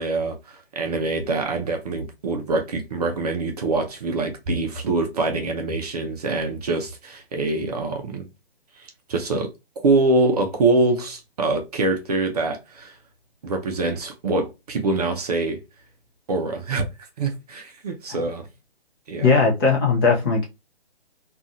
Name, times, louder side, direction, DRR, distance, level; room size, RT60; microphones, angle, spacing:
voice 1, 0.0-8.3 8.8-9.5 9.8-13.0 13.4-15.6 16.3-16.8 17.2-18.5 19.1-19.3, right 3 dB, 40° right, 0.6 m, -24 dB
voice 2, 19.2-20.5, left 4 dB, 25° left, 0.7 m, -18 dB
2.7 x 2.4 x 2.5 m
hypercardioid pair, 150°, 32 cm